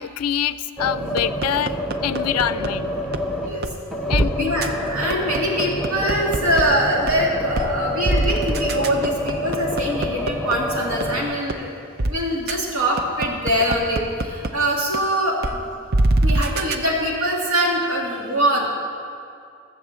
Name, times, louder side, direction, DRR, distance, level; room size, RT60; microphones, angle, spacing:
voice 1, 0.0-3.0 4.1-4.6, left 9 dB, 85° left, 15 dB, 0.4 m, -25 dB
sound 1, 0.8-3.6 3.9-11.2, left 1 dB, ahead, 0.7 m, -28 dB
sound 2, 1.2-2.7 3.1-3.2 3.6-3.7 4.1-4.2 4.6-4.7 5.1-6.6 7.1-7.2 7.6-7.7 8.1-10.5 11.0-11.1 11.5-11.6 12.0-12.1 12.5-12.6 13.0-14.5 14.9-15.0 15.4-15.5 15.9-16.8, right 2 dB, 45° right, 0.5 m, -22 dB
voice 2, 4.4-11.7 12.0-15.6 16.2-18.7, equal, 75° right, -3 dB, 2.6 m, -23 dB
14.0 x 7.3 x 7.4 m, 2.4 s
head